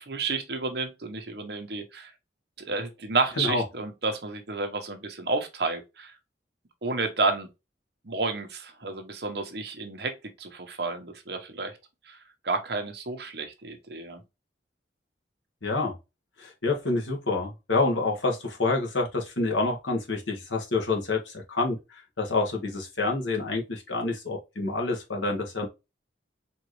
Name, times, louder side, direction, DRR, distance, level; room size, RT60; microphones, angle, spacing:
voice 1, 0.0-2.1 2.7-6.1 6.8-7.5 8.0-10.1 10.4-11.7 12.1-12.2 12.4-14.2, right 3 dB, 60° right, 1.0 m, -31 dB
voice 2, 15.6-15.9 16.4-25.7, left 3 dB, 90° left, 1.4 m, -28 dB
4.4 x 3.0 x 3.1 m
head